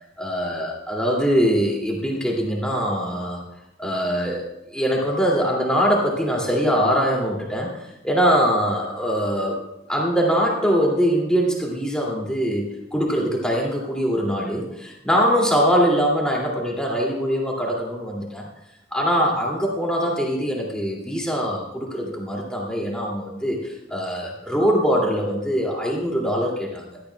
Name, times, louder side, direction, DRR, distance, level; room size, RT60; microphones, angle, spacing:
voice 1, 0.2-3.4 3.8-9.6 9.9-18.5 18.9-27.0, equal, 5° left, -2 dB, 2.4 m, -22 dB
17.0 x 12.0 x 2.3 m, 0.90 s
head